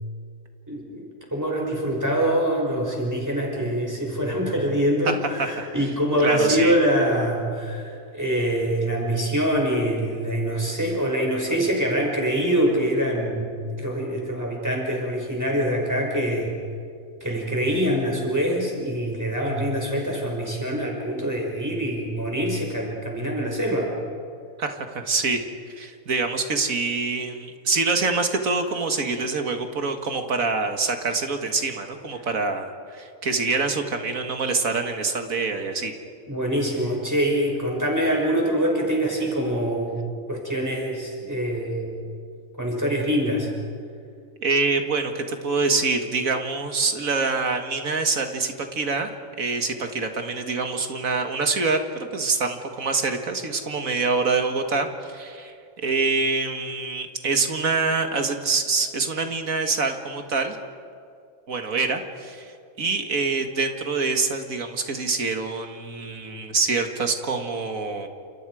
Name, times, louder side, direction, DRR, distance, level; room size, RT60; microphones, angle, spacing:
voice 1, 0.7-16.5 17.2-23.9 36.3-40.0 40.3-41.9 42.6-43.5, equal, 10° right, -1 dB, 5.9 m, -24 dB
voice 2, 5.0-5.7 6.2-6.7 24.6-35.9 44.4-49.1 49.4-55.5 55.8-60.6 61.5-68.1, right 4 dB, 75° right, 5 dB, 2.1 m, -25 dB
29.5 x 28.0 x 4.9 m, 2.3 s
omnidirectional pair, 1.5 m